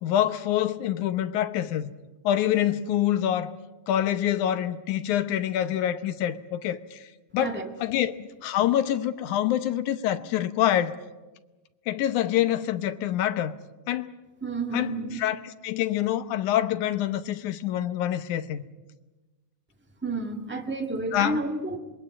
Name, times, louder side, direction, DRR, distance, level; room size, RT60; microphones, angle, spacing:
voice 1, 0.0-1.9 2.2-3.5 3.9-7.1 7.3-11.0 11.9-13.5 13.9-14.1 14.7-18.6 21.1-21.4, left 11 dB, 70° left, 2.2 m, -26 dB
voice 2, 14.4-15.2 20.0-21.8, right 3 dB, 10° right, 0.7 m, -30 dB
25.5 x 20.5 x 8.6 m
omnidirectional pair, 3.8 m